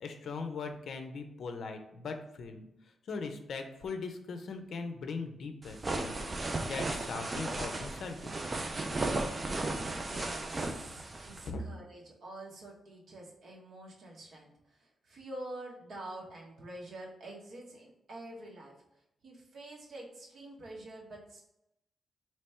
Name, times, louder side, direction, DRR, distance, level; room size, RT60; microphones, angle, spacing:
voice 1, 0.0-2.7 3.1-6.2 6.6-8.4 11.5-11.6, left 4 dB, 65° left, 6 dB, 0.6 m, -40 dB
sound 1, 5.6-11.5, right 2 dB, 25° right, 0.5 m, -35 dB
voice 2, 9.9-18.8 19.2-21.4, right 1 dB, 60° right, -2 dB, 1.2 m, -47 dB
3.3 x 3.1 x 4.3 m, 0.85 s
cardioid pair, 120°, 0 cm